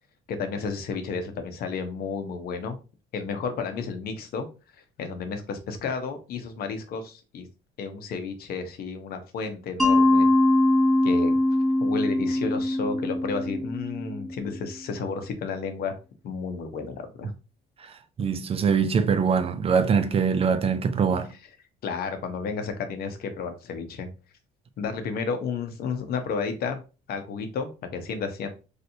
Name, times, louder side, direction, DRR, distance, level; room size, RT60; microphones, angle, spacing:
voice 1, 0.3-2.8 3.1-4.5 4.7-7.5 7.8-10.3 11.0-11.4 11.8-15.9 16.2-17.3 21.8-24.1 24.8-26.8 27.1-28.5, left 5 dB, 65° left, 0.8 m, -32 dB
Mallet percussion, 9.8-14.6, left 1 dB, ahead, 0.8 m, -22 dB
voice 2, 17.8-21.3, right 6 dB, 35° right, 0.4 m, -23 dB
3.2 x 2.8 x 2.6 m
cardioid pair, 110°, 17 cm